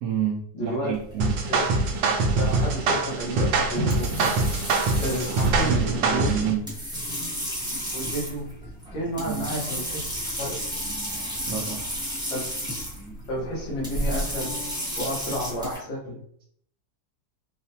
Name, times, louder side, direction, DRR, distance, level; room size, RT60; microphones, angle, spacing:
voice 1, 0.0-1.4 5.5-6.6 9.2-9.5 11.5-11.9, right 8 dB, 70° right, -3 dB, 1.1 m, -29 dB
voice 2, 0.5-0.9 1.5-1.6 2.4-4.3 5.0-6.5 7.9-8.5 8.9-10.1 10.4-10.6 12.3-12.4 13.3-14.6 15.0-16.2, equal, 80° left, -3 dB, 1.9 m, -31 dB
sound 1, 0.9-15.8, equal, 5° right, 0.6 m, -33 dB
sound 2, 1.2-6.5, right 3 dB, 85° right, 1.3 m, -24 dB
4.8 x 2.2 x 2.7 m, 0.64 s
omnidirectional pair, 2.0 m